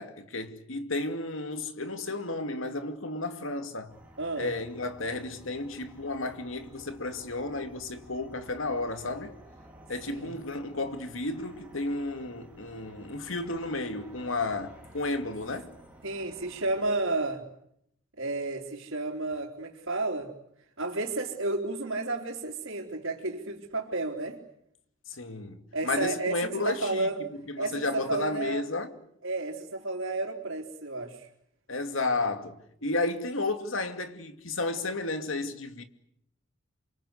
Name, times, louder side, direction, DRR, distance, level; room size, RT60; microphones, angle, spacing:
voice 1, 0.0-3.9 4.4-9.4 9.9-15.7 25.1-25.6 25.8-29.0 31.7-35.8, left 2 dB, 80° left, 2.5 m, -32 dB
sound 1, 3.9-17.0, equal, 5° right, 4.9 m, -53 dB
voice 2, 4.2-4.5 10.1-10.3 16.0-17.4 18.2-20.3 20.8-24.4 25.7-27.2 27.6-28.6 29.2-31.3, right 2 dB, 75° right, 3.8 m, -32 dB
28.5 x 24.5 x 8.2 m
head